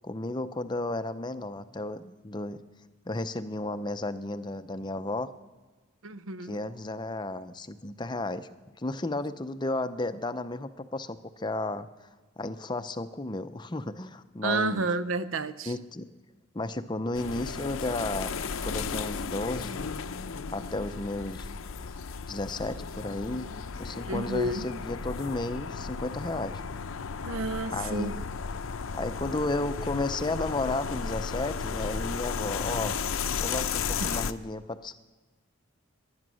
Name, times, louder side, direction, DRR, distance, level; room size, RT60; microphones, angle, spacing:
voice 1, 0.0-2.6 3.1-5.3 6.4-8.5 8.8-11.9 12.4-14.9 15.7-16.1 16.5-18.3 18.6-19.9 20.5-21.5 22.3-23.5 23.8-26.6 27.7-28.3 28.9-32.9 33.4-34.9, left 2 dB, 20° left, 11 dB, 0.5 m, -33 dB
voice 2, 6.0-6.6 14.4-15.7 24.1-24.7 27.2-28.1 34.0-34.2, right 2 dB, 75° right, 14 dB, 0.7 m, -30 dB
sound 1, 17.1-34.3, left 5 dB, 75° left, 0.6 m, -34 dB
22.0 x 9.6 x 6.3 m, 1.3 s
head